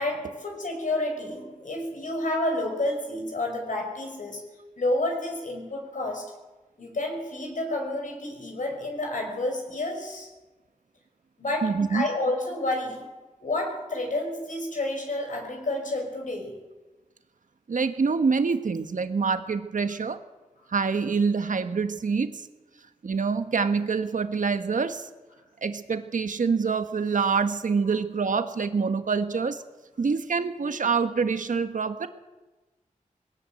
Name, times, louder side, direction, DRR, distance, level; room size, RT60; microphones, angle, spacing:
voice 1, 0.0-4.4 4.8-6.3 6.8-10.3 11.4-16.7, left 1 dB, 70° left, 2 dB, 5.6 m, -30 dB
voice 2, 11.6-12.0 17.7-20.2 20.7-22.4 23.0-25.1 25.6-29.6 30.0-32.1, right 5 dB, 75° right, 8 dB, 1.5 m, -26 dB
21.0 x 17.5 x 7.9 m, 1.1 s
wide cardioid pair, 70°, 14 cm